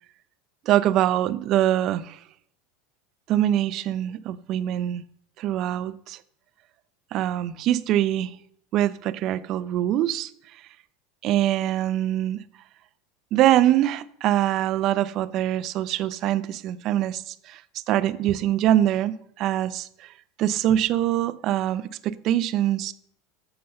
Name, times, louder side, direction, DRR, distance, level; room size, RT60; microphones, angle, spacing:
voice 1, 0.7-2.2 3.3-5.0 5.4-6.2 7.1-8.3 8.7-10.3 11.2-12.4 13.3-17.6 17.9-20.1 20.4-22.9, right 12 dB, 50° right, 15 dB, 0.6 m, -23 dB
7.8 x 6.8 x 6.7 m, 0.69 s
hypercardioid pair, 90°, 0 cm